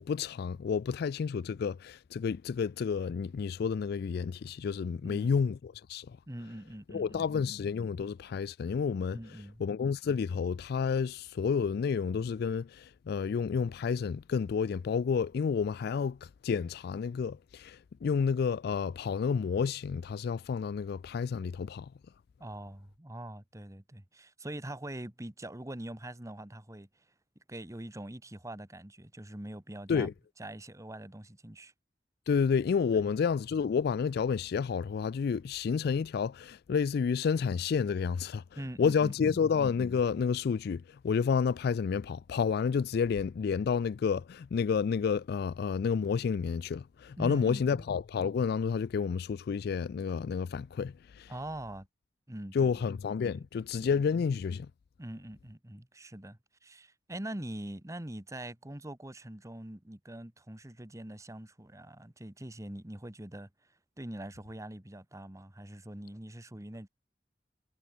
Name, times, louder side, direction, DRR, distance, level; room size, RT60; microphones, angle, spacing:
voice 1, 0.0-6.2 6.9-9.2 9.6-21.9 29.9-30.1 32.3-38.4 38.8-51.3 52.5-54.7, left 6 dB, 60° left, 0.3 m, -30 dB
voice 2, 6.3-7.5 9.1-9.6 22.4-26.9 27.5-31.7 32.9-33.1 38.6-39.4 47.2-47.8 51.3-51.9 52.3-52.8 53.2-53.9 55.0-63.5 64.0-66.9, right 1 dB, 15° right, 1.3 m, -43 dB
head